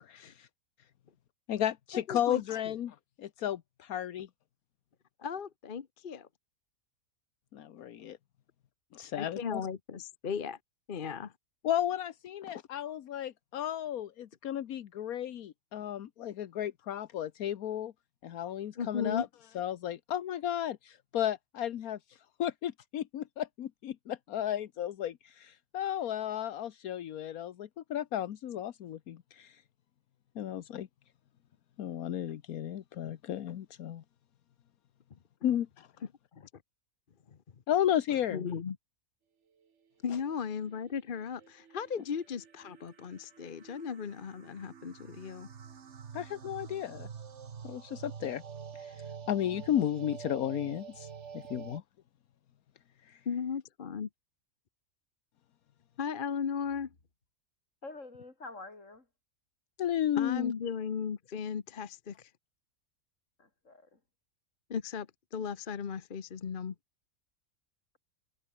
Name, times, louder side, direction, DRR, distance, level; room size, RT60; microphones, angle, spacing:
voice 1, 0.0-0.5 1.5-4.3 7.5-8.2 8.9-9.6 11.6-17.9 18.2-19.3 19.5-29.6 30.4-30.9 31.8-34.0 35.4-35.9 37.7-38.4 46.1-47.1 47.6-48.4 48.8-48.9 49.3-51.1 51.3-51.8 53.0-53.2 59.8-60.5, left 11 dB, 80° left, 1.4 m, -34 dB
voice 2, 2.1-2.7 5.2-6.3 9.1-10.6 10.9-11.3 18.8-19.2 36.3-36.5 38.3-38.8 40.0-45.5 53.3-54.1 56.0-56.9 60.2-62.3 64.7-66.7, left 6 dB, 40° left, 1.0 m, -36 dB
sound 1, 40.4-51.8, right 7 dB, 55° right, 1.5 m, -47 dB
voice 3, 57.8-59.1 63.4-64.0, left 3 dB, 60° left, 4.3 m, -47 dB
omnidirectional pair, 1.5 m